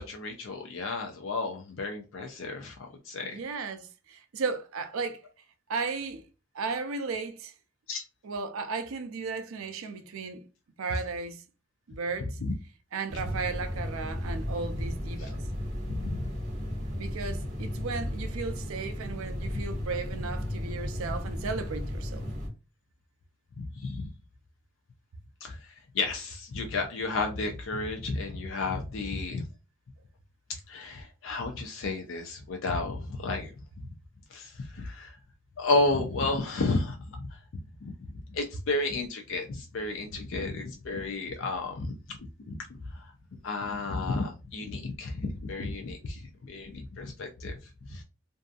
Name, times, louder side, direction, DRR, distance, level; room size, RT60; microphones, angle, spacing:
voice 1, 0.0-3.4 7.9-8.0 12.4-12.5 15.2-15.3 16.0-16.2 23.6-24.1 25.4-25.6 25.9-29.4 30.7-33.5 34.3-35.1 35.6-37.3 38.3-42.0 42.5-42.6 43.4-47.6 47.9-48.0, left 3 dB, 65° left, 0.5 m, -32 dB
voice 2, 3.2-5.2 5.7-6.2 6.5-7.5 8.2-10.5 10.8-11.4 11.9-12.4 12.9-15.4 16.9-22.3, right 4 dB, 80° right, 0.5 m, -35 dB
sound 1, 13.1-22.5, equal, 35° right, 0.8 m, -34 dB
2.6 x 2.3 x 2.4 m
head